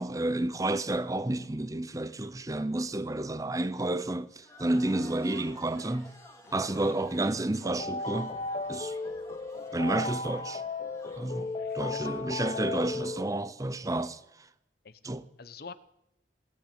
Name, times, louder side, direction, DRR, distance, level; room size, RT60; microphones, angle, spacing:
voice 1, 0.0-6.1 6.5-8.3 8.7-9.0 9.7-10.6 11.2-14.2 15.0-15.2, right 2 dB, 20° right, 0.6 m, -30 dB
sound 1, 4.4-13.2, left 1 dB, 15° left, 2.2 m, -54 dB
sound 2, 7.6-13.3, left 3 dB, 35° left, 0.9 m, -35 dB
voice 2, 11.3-12.1 14.8-15.0 15.4-15.7, left 5 dB, 60° left, 0.8 m, -46 dB
18.5 x 8.8 x 8.5 m
head